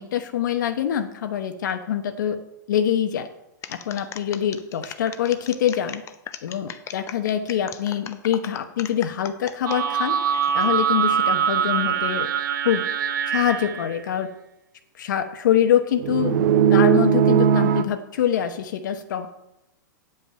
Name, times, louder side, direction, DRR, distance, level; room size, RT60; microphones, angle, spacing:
voice 1, 0.0-2.4 2.7-3.3 3.7-6.0 6.4-10.2 10.5-12.3 12.6-12.8 13.3-14.3 15.0-16.4 16.7-19.3, left 10 dB, 70° left, 7 dB, 0.9 m, -24 dB
sound 1, 3.6-9.8 10.3-10.7, left 9 dB, 25° left, 0.8 m, -38 dB
sound 2, 9.7-13.9 16.0-17.8, right 8 dB, 70° right, 0.8 m, -21 dB
9.3 x 5.7 x 7.6 m, 0.88 s
hypercardioid pair, 115°, 11 cm